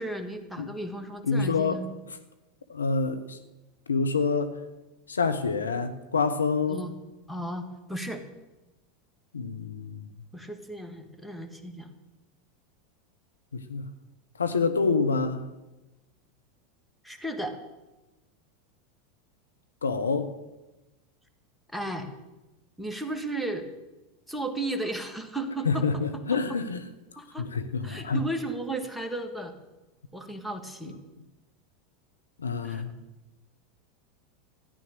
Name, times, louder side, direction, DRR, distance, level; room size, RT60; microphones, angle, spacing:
voice 1, 0.0-1.9 6.7-6.9 7.3-8.2 10.3-11.9 17.0-17.6 21.7-22.1 22.8-23.7 24.3-26.4 27.2-27.5 27.8-29.5 30.1-31.0 32.6-32.9, right 1 dB, ahead, 1.8 m, -34 dB
voice 2, 1.2-1.8 2.7-3.4 3.9-4.6 5.1-6.8 9.3-10.1 13.5-13.8 14.4-15.4 19.8-20.4 25.6-26.9 27.4-28.2 32.4-33.0, left 4 dB, 80° left, 0.9 m, -27 dB
14.0 x 11.0 x 6.6 m
figure-of-eight pair, 85°, 0 cm